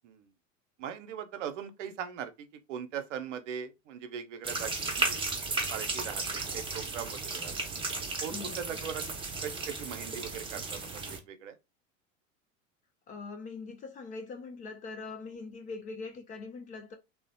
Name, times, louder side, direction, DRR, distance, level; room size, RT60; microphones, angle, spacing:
voice 1, 0.8-7.5 8.2-9.1 9.4-11.6, right 8 dB, 65° right, 0.6 m, -40 dB
sound 1, 4.4-11.2, right 3 dB, 15° right, 0.6 m, -34 dB
voice 2, 8.3-8.7 13.1-17.0, left 4 dB, 20° left, 0.3 m, -42 dB
3.1 x 2.1 x 2.6 m
figure-of-eight pair, 80°, 39 cm